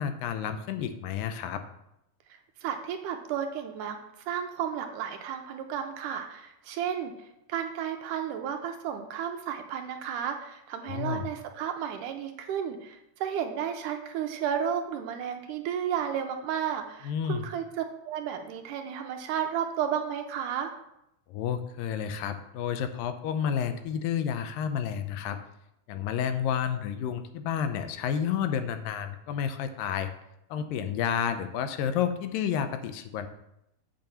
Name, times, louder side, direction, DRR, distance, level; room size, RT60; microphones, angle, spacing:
voice 1, 0.0-1.6 10.8-11.3 17.0-17.5 21.3-25.4 25.9-30.1 30.5-33.3, left 8 dB, 80° left, 9 dB, 2.4 m, -30 dB
voice 2, 2.6-4.0 4.3-7.1 7.5-20.7, right 8 dB, 80° right, 5 dB, 2.1 m, -33 dB
7.6 x 5.0 x 6.9 m, 0.82 s
omnidirectional pair, 4.0 m